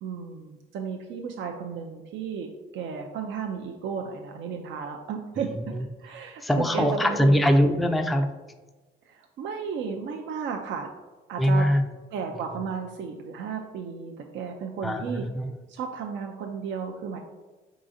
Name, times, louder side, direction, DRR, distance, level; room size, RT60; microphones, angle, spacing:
voice 1, 0.0-5.7 6.0-7.3 9.1-10.9 11.3-11.7 12.1-15.3 15.7-17.2, right 6 dB, 70° right, 3 dB, 0.4 m, -34 dB
voice 2, 6.4-8.3 11.4-11.9 14.8-15.5, equal, ahead, 6 dB, 0.3 m, -22 dB
4.7 x 3.8 x 2.6 m, 1.3 s
cardioid pair, 90°, 20 cm